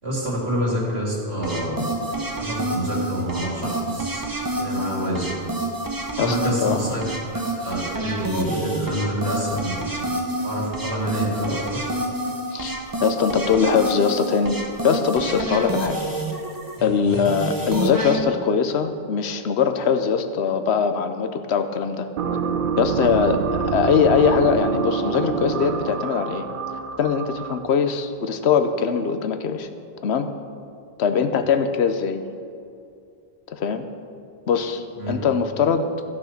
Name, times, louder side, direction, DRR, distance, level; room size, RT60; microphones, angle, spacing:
voice 1, 0.0-1.9 2.4-4.2 4.6-5.3 6.2-7.0 7.5-9.8 10.4-11.8 17.0-17.1 23.3-23.4 35.0-35.1, equal, 75° right, -5 dB, 3.0 m, -27 dB
sound 1, 1.4-18.2, right 1 dB, 20° right, 0.9 m, -28 dB
voice 2, 6.2-6.8 12.5-12.7 13.0-16.0 16.8-22.1 22.8-26.5 27.0-29.7 30.0-30.3 31.0-32.2 33.5-33.9 34.5-36.1, left 6 dB, 90° left, 8 dB, 1.0 m, -22 dB
sound 2, 22.2-27.8, right 6 dB, 60° right, 0.7 m, -26 dB
14.0 x 6.3 x 5.8 m, 2.5 s
omnidirectional pair, 1.1 m